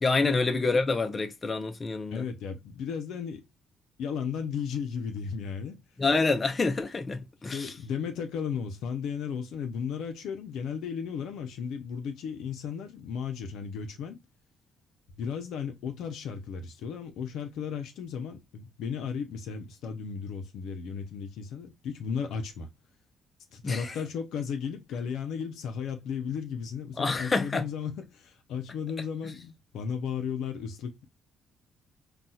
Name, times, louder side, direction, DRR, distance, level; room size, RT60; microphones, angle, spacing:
voice 1, 0.0-2.3 6.0-7.7 23.6-24.0 27.0-27.7, left 3 dB, 30° left, 0.6 m, -27 dB
voice 2, 2.1-3.4 4.0-5.8 7.5-14.2 15.2-22.7 23.5-31.1, left 6 dB, 85° left, 0.6 m, -35 dB
4.1 x 2.3 x 2.3 m
cardioid pair, 90°, 0 cm